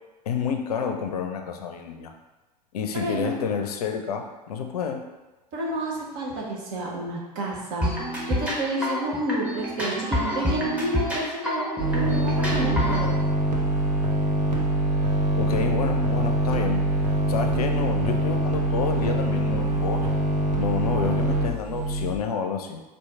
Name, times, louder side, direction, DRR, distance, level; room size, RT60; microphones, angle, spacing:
voice 1, 0.3-2.1 2.7-5.1 15.4-16.9 17.3-20.1 20.6-22.8, left 6 dB, 65° left, 5 dB, 0.5 m, -29 dB
voice 2, 2.9-3.3 5.5-7.9 8.3-13.2, right 1 dB, 50° right, -2 dB, 1.1 m, -30 dB
sound 1, 7.8-13.1, equal, 5° right, 1.1 m, -28 dB
sound 2, 11.8-22.1, right 1 dB, 80° right, 0.7 m, -24 dB
4.4 x 2.5 x 3.6 m, 1.1 s
figure-of-eight pair, 80°, 21 cm